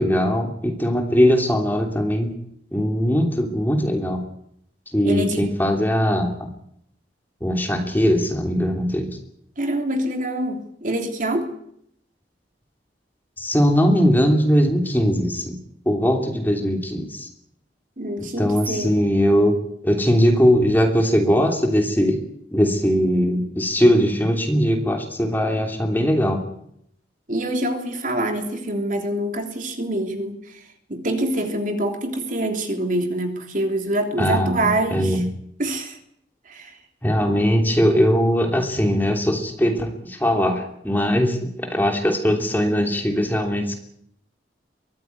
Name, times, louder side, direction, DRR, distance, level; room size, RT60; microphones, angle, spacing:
voice 1, 0.0-2.3 2.7-4.2 4.9-6.5 7.4-9.1 13.4-15.6 15.8-17.3 18.4-19.5 19.8-22.2 22.5-26.4 34.2-35.2 37.0-43.7, equal, 10° left, 3 dB, 3.0 m, -20 dB
voice 2, 5.0-5.4 9.6-11.5 18.0-19.0 27.3-35.2 35.6-36.0 36.4-36.8 37.2-37.4, right 1 dB, 45° right, 5 dB, 3.2 m, -25 dB
23.5 x 15.0 x 9.7 m, 0.72 s
head